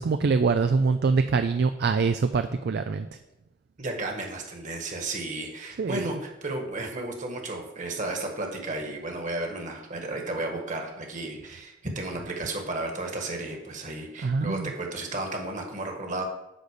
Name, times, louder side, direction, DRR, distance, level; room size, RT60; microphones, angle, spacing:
voice 1, 0.0-3.1 5.8-6.1 14.2-14.7, right 4 dB, 60° right, 9 dB, 0.4 m, -24 dB
voice 2, 3.8-16.2, right 2 dB, 40° right, 2 dB, 1.6 m, -33 dB
10.0 x 4.0 x 6.7 m, 0.97 s
head